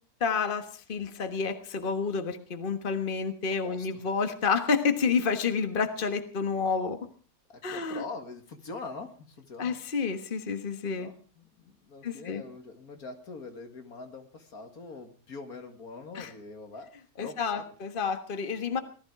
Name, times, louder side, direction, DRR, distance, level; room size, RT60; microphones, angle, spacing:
voice 1, 0.2-7.0 7.6-8.0 9.6-11.1 12.0-12.4 16.1-16.3 17.2-18.8, left 5 dB, 35° left, 8 dB, 1.5 m, -29 dB
voice 2, 3.6-4.1 7.5-9.8 10.9-16.9 17.2-17.6 18.6-18.8, left 3 dB, 75° left, 6 dB, 2.5 m, -43 dB
19.0 x 13.5 x 4.8 m, 0.40 s
omnidirectional pair, 1.6 m